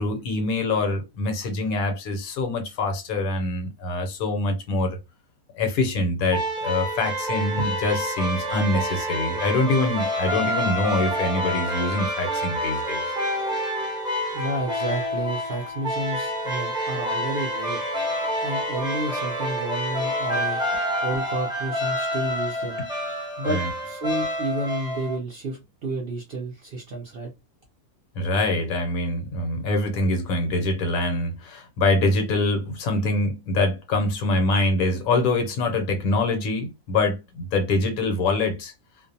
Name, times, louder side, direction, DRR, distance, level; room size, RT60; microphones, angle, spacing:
voice 1, 0.0-5.0 5.5-13.0 19.1-19.2 23.5-23.7 28.2-38.7, left 2 dB, 75° left, 1.1 m, -24 dB
sound 1, 6.3-25.2, equal, 5° right, 0.6 m, -28 dB
voice 2, 14.3-17.8 18.4-20.6 21.0-22.8 23.4-27.3, right 2 dB, 60° right, 0.6 m, -30 dB
2.5 x 2.1 x 2.6 m
omnidirectional pair, 1.6 m